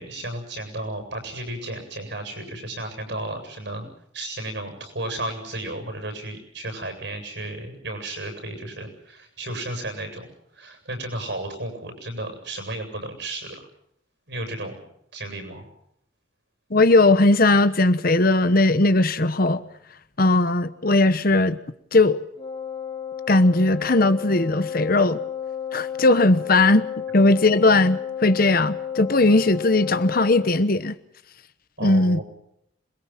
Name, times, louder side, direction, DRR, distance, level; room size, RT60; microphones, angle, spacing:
voice 1, 0.0-3.9 4.1-10.2 10.5-13.7 14.3-14.8 15.1-15.7 31.8-32.2, right 1 dB, 65° right, 7.8 m, -33 dB
voice 2, 16.7-19.6 20.2-21.6 21.9-22.2 23.3-25.2 25.7-26.8 27.1-30.9 31.8-32.2, left 2 dB, 50° left, 1.1 m, -18 dB
Wind instrument woodwind instrument, 22.4-30.6, left 9 dB, 30° left, 4.0 m, -32 dB
27.0 x 22.0 x 5.9 m
head